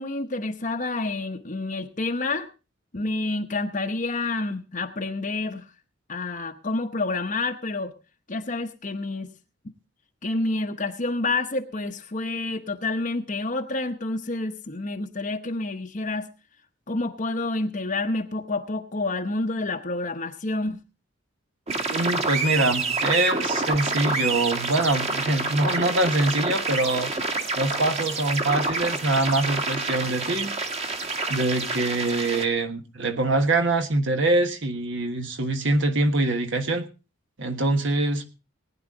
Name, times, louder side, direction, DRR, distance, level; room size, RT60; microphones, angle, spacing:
voice 1, 0.0-2.5 2.9-5.7 6.1-7.9 8.3-9.3 10.2-16.3 16.9-20.8, left 2 dB, 35° left, 3 dB, 0.9 m, -28 dB
sound 1, 21.7-32.4, right 3 dB, 30° right, 1.7 m, -28 dB
voice 2, 21.9-27.1 27.6-30.5 31.3-36.8 37.4-38.3, right 2 dB, 60° right, 7 dB, 1.5 m, -24 dB
19.5 x 10.0 x 3.8 m, 0.32 s
head